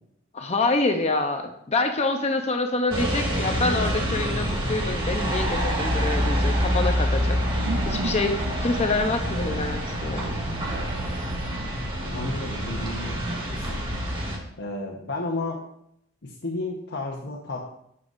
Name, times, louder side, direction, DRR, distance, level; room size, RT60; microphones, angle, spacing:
voice 1, 0.3-7.4 7.8-8.4 8.6-10.4, left 3 dB, 30° left, 5 dB, 0.7 m, -26 dB
sound 1, 2.9-14.4, equal, 25° right, 1.8 m, -26 dB
sound 2, 7.4-12.2, right 3 dB, 70° right, 0.7 m, -37 dB
voice 2, 12.0-13.9 14.6-15.7 16.2-17.7, left 2 dB, 60° left, 0 dB, 1.1 m, -32 dB
11.5 x 7.9 x 2.6 m, 0.74 s
head